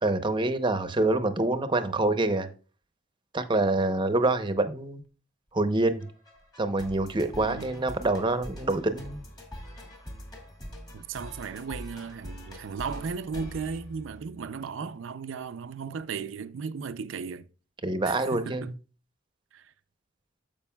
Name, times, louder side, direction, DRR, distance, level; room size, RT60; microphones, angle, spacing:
voice 1, 0.0-2.5 3.3-5.0 5.5-6.1 6.6-9.2 17.8-18.7, right 2 dB, 25° right, 0.7 m, -26 dB
sound 1, 6.0-14.6, equal, 20° left, 2.0 m, -43 dB
voice 2, 10.9-17.5 18.0-18.7 19.5-19.7, right 5 dB, 75° right, 0.4 m, -36 dB
14.0 x 5.3 x 2.2 m
head